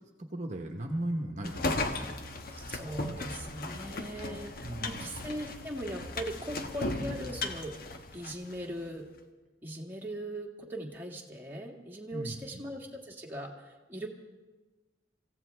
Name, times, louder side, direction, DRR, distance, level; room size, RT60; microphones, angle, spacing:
voice 1, 0.2-2.1 4.6-5.1 12.1-12.6, right 1 dB, 40° right, 2 dB, 1.1 m, -37 dB
sound 1, 1.4-8.6, left 2 dB, 50° left, 1.1 m, -36 dB
voice 2, 2.5-7.8 8.1-9.1 9.6-14.1, right 1 dB, 10° right, -2 dB, 1.8 m, -40 dB
25.0 x 15.5 x 3.4 m, 1.2 s
head